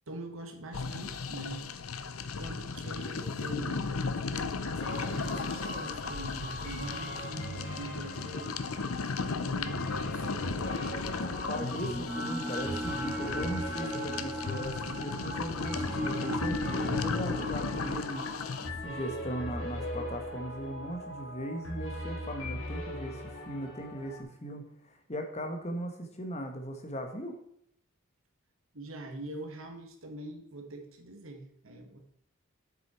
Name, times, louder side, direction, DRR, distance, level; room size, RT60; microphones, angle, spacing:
voice 1, 0.1-1.7 2.1-8.7 9.2-10.7 28.7-32.0, right 1 dB, 75° right, 4 dB, 1.7 m, -44 dB
sound 1, 0.7-18.7, left 4 dB, 85° left, 0.7 m, -35 dB
sound 2, 4.8-24.2, equal, 70° left, 2.5 m, -41 dB
voice 2, 11.1-18.2 18.6-27.3, equal, 30° left, 4 dB, 1.3 m, -38 dB
sound 3, 11.5-21.7, equal, 5° right, 1.8 m, -38 dB
8.0 x 6.7 x 4.4 m, 0.73 s
head